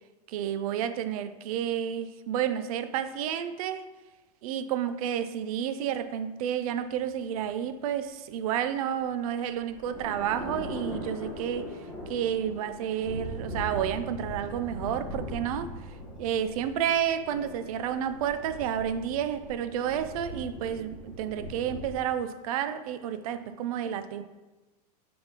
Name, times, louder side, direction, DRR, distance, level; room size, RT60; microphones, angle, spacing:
voice 1, 0.3-3.9 4.4-11.8 12.1-15.8 16.2-24.2, right 9 dB, 60° right, 0.5 m, -30 dB
sound 1, 8.9-22.0, equal, 5° left, 2.0 m, -40 dB
6.9 x 5.3 x 2.9 m
supercardioid pair, 140°, 21 cm